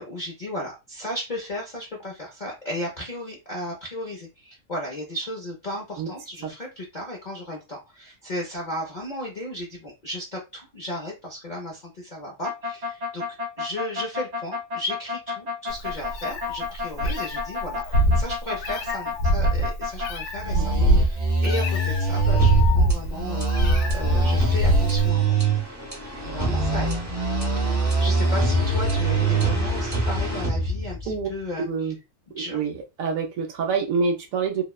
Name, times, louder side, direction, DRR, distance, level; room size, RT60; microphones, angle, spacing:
voice 1, 0.0-13.2 13.6-25.3 26.2-26.9 27.6-31.9 32.4-32.6, left 1 dB, 50° left, -2 dB, 0.5 m, -35 dB
sound 1, 12.4-20.1 20.4-22.6 23.1-25.6 26.2-29.5, right 3 dB, 50° right, 0.4 m, -25 dB
Meow, 15.7-25.1, equal, 90° left, 1.1 m, -23 dB
sound 2, 22.4-31.3, equal, 15° right, 0.7 m, -29 dB
voice 2, 31.6-31.9 32.5-34.6, right 5 dB, 70° right, 3 dB, 0.9 m, -26 dB
2.8 x 2.1 x 2.3 m, 0.25 s
omnidirectional pair, 1.6 m